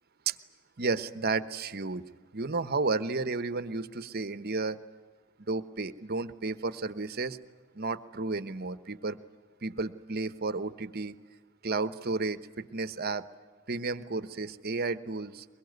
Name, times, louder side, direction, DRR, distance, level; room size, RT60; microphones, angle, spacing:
voice 1, 0.8-4.8 5.4-7.4 7.7-9.2 9.6-11.2 11.6-13.2 13.7-15.5, right 3 dB, 50° right, 14 dB, 1.1 m, -32 dB
23.0 x 22.5 x 9.4 m, 1.5 s
head